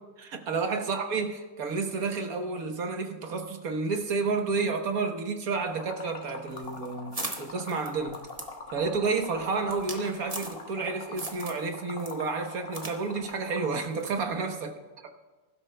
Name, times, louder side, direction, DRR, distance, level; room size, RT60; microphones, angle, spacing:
voice 1, 0.2-8.2 8.7-14.7, right 4 dB, 85° right, 5 dB, 1.6 m, -30 dB
Liquid, 5.8-13.8, left 4 dB, 45° left, 1.4 m, -42 dB
sound 1, 6.5-10.9 11.2-11.7 12.0-13.0 13.2-13.3 14.0-14.2, right 2 dB, 25° right, 1.4 m, -39 dB
21.5 x 12.5 x 2.2 m, 1.3 s
omnidirectional pair, 1.5 m